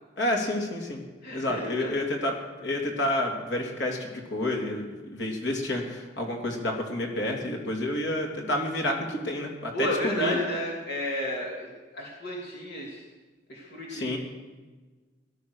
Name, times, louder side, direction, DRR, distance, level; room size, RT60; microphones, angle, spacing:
voice 1, 0.2-1.0 1.3-10.4 13.9-14.2, left 1 dB, 85° left, 1 dB, 3.1 m, -29 dB
voice 2, 1.2-1.9 9.7-13.0 13.5-14.1, equal, 60° left, -3 dB, 2.9 m, -32 dB
18.0 x 12.0 x 6.5 m, 1.3 s
head